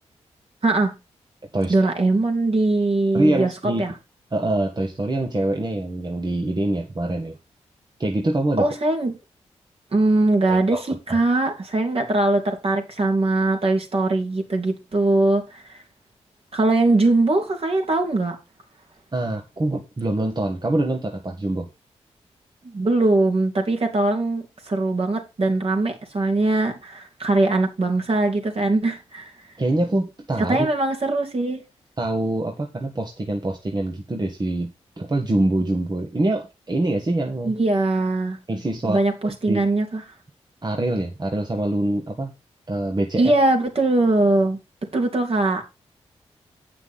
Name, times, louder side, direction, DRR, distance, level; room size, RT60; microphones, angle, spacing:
voice 1, 0.6-0.9 1.7-3.5 3.8-3.9 8.6-9.1 9.9-10.8 11.1-15.8 16.5-18.4 22.7-29.3 30.5-31.6 37.4-38.4 38.8-40.0 43.2-44.6 44.9-45.6, right 2 dB, 55° right, 3.1 m, -21 dB
voice 2, 1.5-1.9 3.1-3.8 4.3-7.4 8.0-8.7 10.5-10.8 19.1-21.7 29.6-30.7 32.0-34.7 35.0-37.5 38.5-39.0 39.2-39.6 40.6-42.3 42.7-43.3, right 1 dB, 35° right, 1.6 m, -24 dB
8.4 x 5.9 x 5.7 m
supercardioid pair, 45°, 12 cm